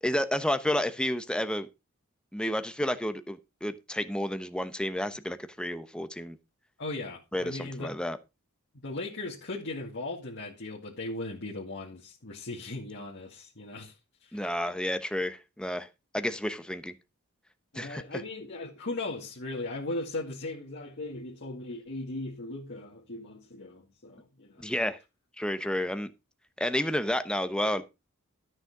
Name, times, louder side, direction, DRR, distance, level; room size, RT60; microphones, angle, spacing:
voice 1, 0.0-1.7 2.3-6.4 7.3-8.2 14.3-15.9 16.1-16.9 17.7-18.0 24.6-25.0 25.4-26.1 26.6-27.8, left 1 dB, 5° left, 1.0 m, -30 dB
voice 2, 6.8-7.9 8.8-14.5 17.7-24.7, left 2 dB, 55° left, 2.2 m, -38 dB
13.0 x 6.6 x 4.8 m
head